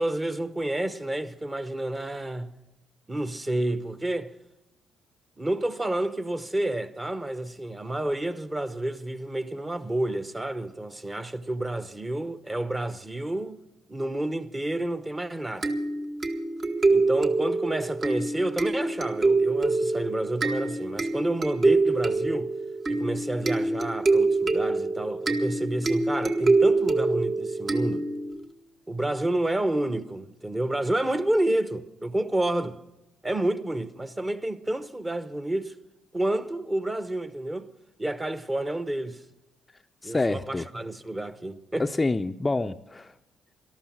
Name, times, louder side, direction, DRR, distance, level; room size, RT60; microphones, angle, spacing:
voice 1, 0.0-2.5 3.1-4.3 5.4-13.6 13.9-15.7 16.9-22.5 22.9-28.1 28.9-32.8 33.2-35.7 36.1-37.7 38.0-39.2 40.0-41.9, right 1 dB, 20° right, 0.9 m, -29 dB
sound 1, 15.6-28.4, right 3 dB, 45° right, 1.3 m, -25 dB
voice 2, 40.0-40.7 41.8-43.1, left 2 dB, 20° left, 0.5 m, -27 dB
13.0 x 12.5 x 7.3 m
cardioid pair, 85°, 0 cm